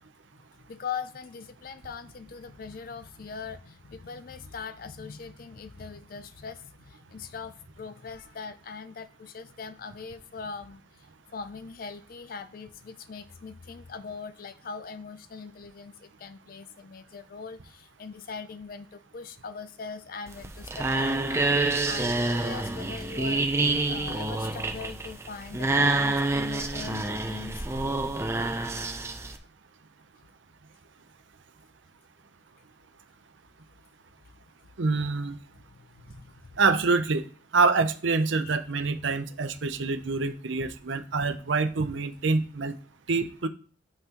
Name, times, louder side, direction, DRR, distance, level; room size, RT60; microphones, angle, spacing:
voice 1, 0.7-23.4 23.9-27.7 35.7-36.6 38.5-38.6, left 5 dB, 45° left, 12 dB, 0.4 m, -41 dB
sound 1, 20.3-29.4, right 2 dB, 15° right, 0.4 m, -27 dB
voice 2, 34.8-35.4 36.6-37.2 37.5-42.7 43.1-43.5, right 4 dB, 75° right, 9 dB, 0.6 m, -26 dB
7.6 x 5.5 x 2.9 m, 0.40 s
head